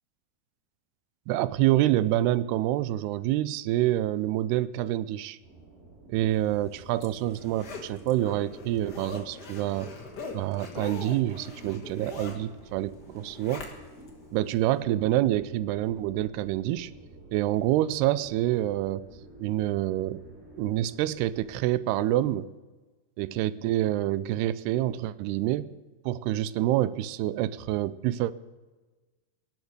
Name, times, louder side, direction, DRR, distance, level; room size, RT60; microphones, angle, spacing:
voice 1, 1.3-5.4 6.1-9.9 10.3-13.7 14.3-16.9 17.3-19.0 19.4-20.2 20.6-22.5 23.2-25.7 26.1-28.3, right 14 dB, 90° right, 17 dB, 2.7 m, -27 dB
sound 1, 5.4-21.6, right 2 dB, 55° right, 4.9 m, -50 dB
Zipper (clothing), 6.5-14.1 14.5-14.6, left 4 dB, 45° left, 1.4 m, -43 dB
19.0 x 6.6 x 9.4 m, 1.2 s
omnidirectional pair, 4.5 m